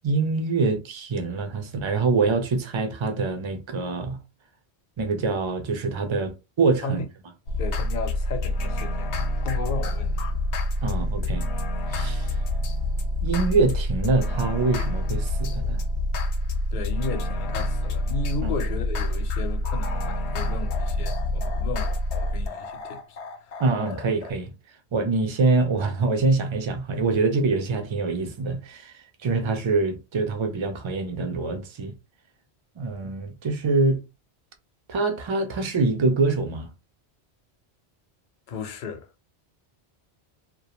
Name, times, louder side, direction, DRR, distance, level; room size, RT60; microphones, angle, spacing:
voice 1, 0.0-4.2 5.0-7.0 10.8-11.4 11.9-12.3 13.2-15.8 18.4-18.5 23.6-24.5 24.9-31.9 32.8-34.0 34.9-36.7, right 3 dB, 50° right, 0.3 m, -25 dB
sound 1, 7.5-24.3, left 1 dB, 85° left, 0.9 m, -27 dB
voice 2, 7.6-9.1 9.4-10.4 16.7-23.6 38.5-39.1, left 4 dB, 55° left, 0.6 m, -34 dB
2.4 x 2.1 x 2.9 m
omnidirectional pair, 1.1 m